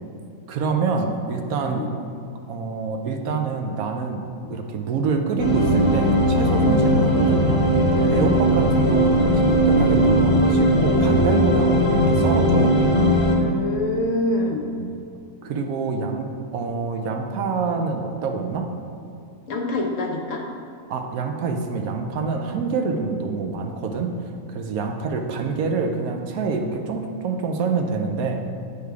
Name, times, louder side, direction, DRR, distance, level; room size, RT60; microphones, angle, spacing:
voice 1, 0.5-1.9 2.5-7.4 8.1-12.8 14.8-15.0 15.4-18.7 20.9-24.1 24.5-28.4, right 4 dB, 80° right, 4 dB, 1.1 m, -26 dB
sound 1, 5.4-13.4, equal, 30° left, 0.7 m, -18 dB
voice 2, 7.9-8.2 13.4-14.6 19.5-20.5, left 2 dB, 60° left, 1 dB, 1.1 m, -26 dB
8.4 x 3.4 x 4.6 m, 2.5 s
omnidirectional pair, 1.5 m